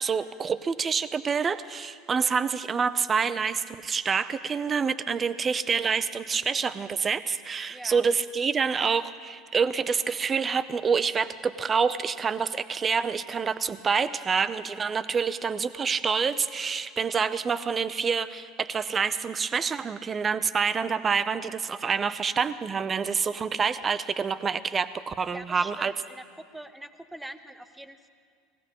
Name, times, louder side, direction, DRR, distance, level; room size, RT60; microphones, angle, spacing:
voice 1, 0.0-25.9, right 6 dB, 30° right, 14 dB, 0.7 m, -27 dB
voice 2, 7.7-8.0 25.3-28.1, right 1 dB, 5° right, 10 dB, 0.9 m, -44 dB
19.5 x 16.0 x 3.7 m, 2.1 s
hypercardioid pair, 80°, 0 cm